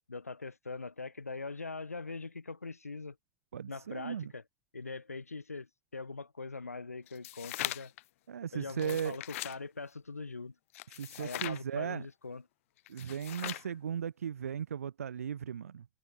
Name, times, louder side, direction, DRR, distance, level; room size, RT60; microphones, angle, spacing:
voice 1, 0.1-3.2 3.7-4.4 4.7-7.9 8.5-10.5 11.2-12.4, left 3 dB, 90° left, 3.4 m, -42 dB
voice 2, 3.5-4.3 8.3-9.2 10.9-12.0 12.9-15.9, right 8 dB, 80° right, 1.8 m, -37 dB
sound 1, 7.1-8.0 8.7-9.6 10.7-11.6 12.9-13.7, left 16 dB, 65° left, 1.1 m, -40 dB
figure-of-eight pair, 75°, 8 cm